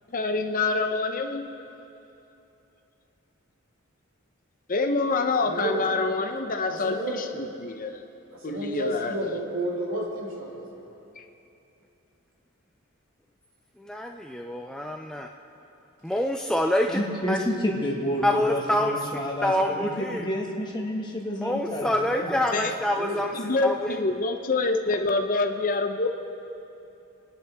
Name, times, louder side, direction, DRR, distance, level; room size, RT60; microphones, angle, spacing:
voice 1, 0.1-1.5 4.7-8.0 8.4-9.3 11.2-11.3 22.5-22.7 23.3-26.1, left 3 dB, 40° left, 5 dB, 0.8 m, -26 dB
voice 2, 5.4-5.8 6.7-7.2 8.3-10.7 22.9-23.2, right 1 dB, 70° right, -5 dB, 3.6 m, -31 dB
voice 3, 13.8-15.3 16.0-17.0 17.3-17.4 18.2-19.0 19.4-20.3 21.4-23.3 23.6-24.0, left 1 dB, 5° left, 2 dB, 0.4 m, -26 dB
voice 4, 16.9-22.3, left 1 dB, 20° left, -1 dB, 1.8 m, -30 dB
29.5 x 10.5 x 3.6 m, 2.9 s
head